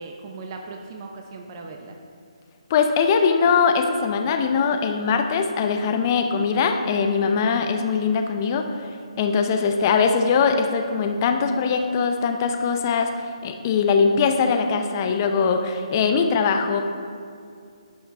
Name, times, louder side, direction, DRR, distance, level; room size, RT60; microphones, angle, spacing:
voice 1, 0.0-2.0 9.1-9.4, right 3 dB, 35° right, 2 dB, 0.8 m, -39 dB
voice 2, 2.7-16.8, left 5 dB, 35° left, 5 dB, 0.7 m, -21 dB
11.0 x 5.6 x 4.4 m, 2.3 s
figure-of-eight pair, 145°, 3 cm